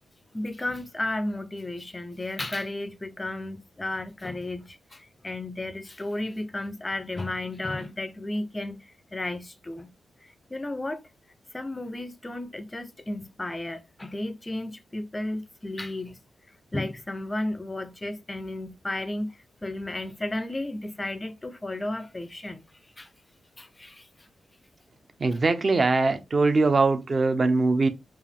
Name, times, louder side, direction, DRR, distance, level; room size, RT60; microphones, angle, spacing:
voice 1, 0.3-9.9 10.5-11.0 11.5-16.2 16.7-19.4 19.6-22.6 23.0-23.1 23.6-24.1 25.3-25.4, left 1 dB, 15° left, 0.5 m, -33 dB
voice 2, 25.2-27.9, right 3 dB, 35° right, 0.5 m, -22 dB
4.8 x 2.4 x 3.4 m
wide cardioid pair, 150°, 0 cm